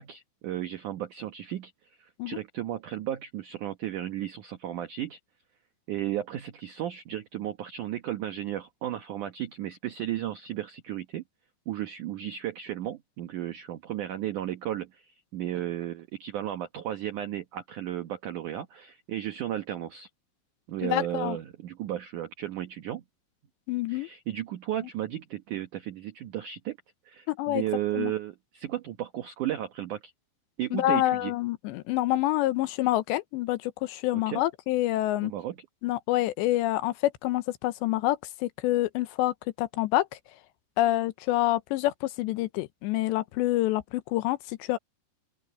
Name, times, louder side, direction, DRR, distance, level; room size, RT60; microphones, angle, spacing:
voice 1, 0.0-1.7 2.0-5.2 5.9-11.2 11.7-20.1 20.7-23.0 23.9-26.8 27.1-30.1 30.6-31.3 34.1-34.4 35.2-35.6, right 12 dB, 80° right, 1.8 m, -34 dB
voice 2, 20.8-21.4 23.7-24.1 27.3-27.6 27.9-28.1 30.7-35.3 35.8-40.1 40.8-44.8, left 15 dB, 80° left, 2.9 m, -27 dB
open air
omnidirectional pair, 5.2 m